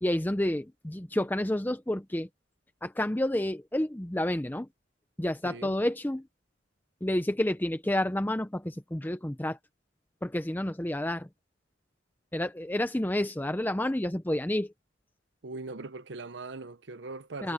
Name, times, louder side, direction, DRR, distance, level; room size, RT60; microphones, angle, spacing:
voice 1, 0.0-2.3 2.8-4.7 5.2-6.3 7.0-9.6 10.2-11.3 12.3-14.7 17.4-17.5, left 1 dB, 10° left, 0.6 m, -29 dB
voice 2, 5.4-5.7 15.4-17.5, right 3 dB, 70° right, 0.8 m, -40 dB
head